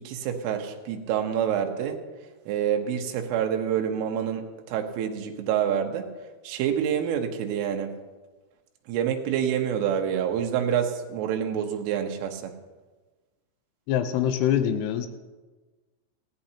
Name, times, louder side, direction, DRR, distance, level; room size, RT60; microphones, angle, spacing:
voice 1, 0.0-2.0 2.5-6.1 6.4-7.9 8.9-12.6, right 9 dB, 90° right, 4 dB, 3.7 m, -27 dB
voice 2, 13.9-15.1, left 10 dB, 80° left, 8 dB, 2.4 m, -24 dB
19.0 x 16.0 x 2.9 m, 1.3 s
omnidirectional pair, 5.6 m